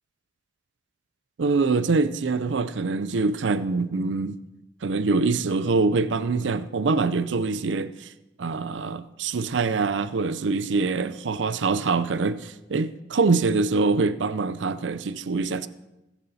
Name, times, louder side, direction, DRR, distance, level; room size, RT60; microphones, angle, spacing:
voice 1, 1.4-4.4 4.8-8.1 8.4-15.7, right 4 dB, 85° right, 0.5 m, -24 dB
20.5 x 7.2 x 4.2 m
head